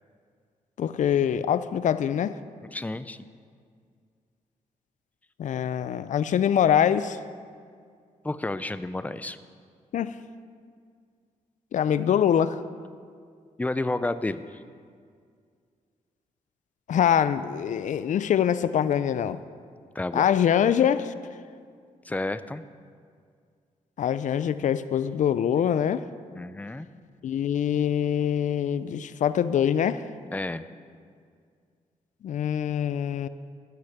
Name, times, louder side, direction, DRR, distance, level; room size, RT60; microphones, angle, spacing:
voice 1, 0.8-2.4 5.4-7.2 9.9-10.2 11.7-12.6 16.9-19.4 20.1-21.1 24.0-26.1 27.2-30.0 32.2-33.3, left 9 dB, 65° left, 14 dB, 0.5 m, -24 dB
voice 2, 2.7-3.3 8.2-9.4 13.6-14.6 19.9-20.3 22.0-22.6 26.3-26.9 30.3-30.6, left 2 dB, 10° left, 13 dB, 0.5 m, -31 dB
15.0 x 6.4 x 6.0 m, 2.1 s
cardioid pair, 75°, 14 cm